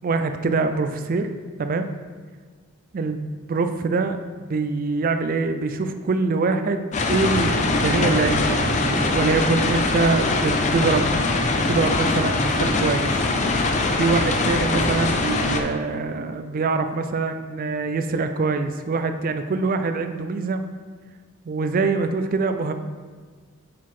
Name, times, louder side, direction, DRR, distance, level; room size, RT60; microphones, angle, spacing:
voice 1, 0.0-1.3 1.6-1.9 2.9-13.4 14.0-20.6 21.5-22.7, right 3 dB, 40° right, 8 dB, 0.4 m, -24 dB
sound 1, 6.9-15.6, left 2 dB, 35° left, 0.5 m, -22 dB
7.3 x 3.9 x 4.3 m, 1.5 s
head